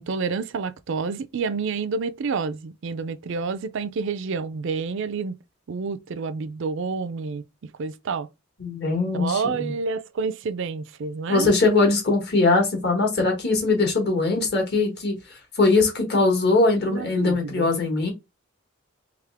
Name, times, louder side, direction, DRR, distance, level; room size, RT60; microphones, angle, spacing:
voice 1, 0.0-5.3 5.7-7.4 7.8-8.3 9.1-11.5 16.8-17.7, right 4 dB, 60° right, 0.4 m, -29 dB
voice 2, 8.6-9.7 11.3-15.1 15.6-18.1, left 3 dB, 50° left, 1.7 m, -21 dB
3.6 x 3.3 x 3.3 m
head